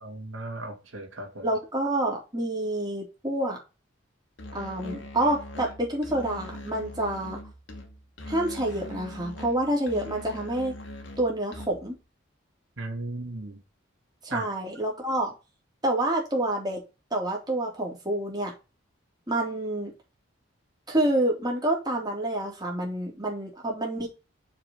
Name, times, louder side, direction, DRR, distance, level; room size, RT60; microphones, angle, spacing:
voice 1, 0.0-1.5 12.8-13.6 14.3-14.4, right 2 dB, 80° right, 2.2 m, -36 dB
voice 2, 1.4-3.6 4.5-7.4 8.3-10.7 11.2-12.0 14.2-15.3 15.8-16.8 17.1-18.5 19.3-19.9 20.9-24.1, right 1 dB, 20° right, 3.7 m, -28 dB
Musical instrument, 4.4-12.0, left 1 dB, 65° left, 2.3 m, -41 dB
7.4 x 5.1 x 7.2 m
head